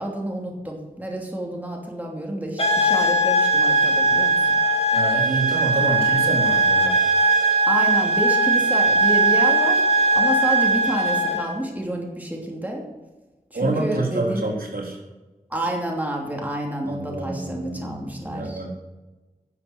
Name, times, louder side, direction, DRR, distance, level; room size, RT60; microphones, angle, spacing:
voice 1, 0.0-4.6 7.7-9.9 10.1-12.8 13.5-14.4 15.5-18.7, right 1 dB, 10° right, -1 dB, 2.8 m, -29 dB
sound 1, 2.6-11.5, right 2 dB, 40° left, 2.6 m, -19 dB
voice 2, 4.9-7.0 13.5-15.0 16.9-18.7, right 2 dB, 75° right, -2 dB, 3.8 m, -27 dB
12.0 x 7.5 x 7.8 m, 1.2 s
wide cardioid pair, 80°, 15 cm